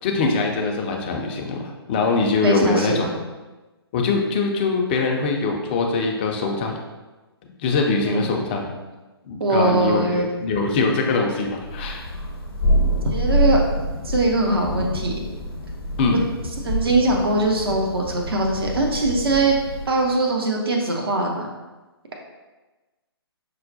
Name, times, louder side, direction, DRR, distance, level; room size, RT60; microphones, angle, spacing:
voice 1, 0.0-3.1 3.9-6.8 7.6-8.7 9.3-12.0 16.0-16.2, left 3 dB, 25° left, 2 dB, 0.4 m, -22 dB
voice 2, 2.4-3.2 8.0-8.3 9.4-10.3 13.0-13.6 14.0-15.1 16.6-19.5 19.9-21.5, right 2 dB, 65° right, 0 dB, 0.7 m, -21 dB
Thunder, 11.6-20.1, equal, 60° left, 0.7 m, -26 dB
5.4 x 2.1 x 2.6 m, 1.2 s
figure-of-eight pair, 130°, 13 cm